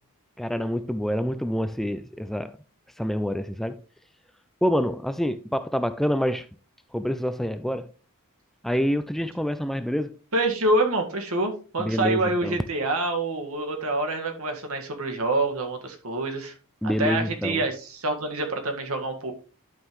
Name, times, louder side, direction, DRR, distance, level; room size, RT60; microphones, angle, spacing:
voice 1, 0.4-2.5 3.0-3.8 4.6-6.5 6.9-7.9 8.6-10.2 11.8-12.6 16.8-17.6, equal, ahead, 0.3 m, -27 dB
voice 2, 10.3-16.5 16.8-19.3, right 2 dB, 70° right, 1.8 m, -26 dB
11.5 x 5.5 x 3.1 m
head